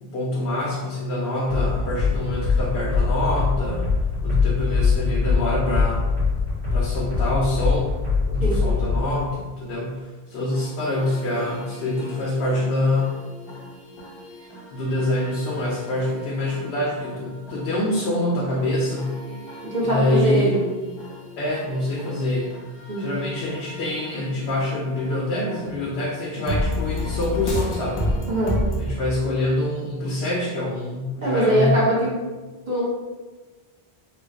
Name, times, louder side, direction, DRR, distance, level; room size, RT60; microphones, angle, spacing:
voice 1, 0.0-3.9 4.2-6.1 6.7-7.9 8.3-13.1 14.7-19.1 19.8-20.5 21.4-22.6 23.0-28.0 28.8-31.8, left 1 dB, 85° left, -3 dB, 0.8 m, -25 dB
sound 1, 1.5-9.0, left 4 dB, 60° right, 1.6 m, -22 dB
sound 2, 10.5-28.9, left 1 dB, 35° left, 0.4 m, -33 dB
voice 2, 19.6-20.6 22.9-23.1 25.7-25.8 28.3-28.5 31.2-32.1 32.7-32.8, right 1 dB, 45° right, -7 dB, 1.1 m, -22 dB
3.1 x 2.2 x 3.4 m, 1.3 s
omnidirectional pair, 1.1 m